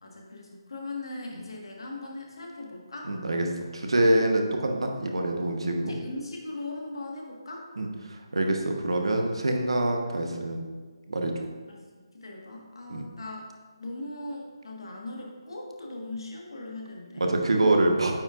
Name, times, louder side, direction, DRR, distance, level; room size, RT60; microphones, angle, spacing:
voice 1, 0.0-3.1 5.9-7.6 11.9-13.4 13.8-17.2, left 2 dB, 70° left, -1 dB, 1.5 m, -39 dB
voice 2, 3.0-3.5 3.7-6.0 7.8-10.6 11.1-11.5 12.9-13.1 17.2-18.1, right 1 dB, 75° right, 2 dB, 1.1 m, -25 dB
8.7 x 5.6 x 2.5 m, 1.4 s
figure-of-eight pair, 160°, 3 cm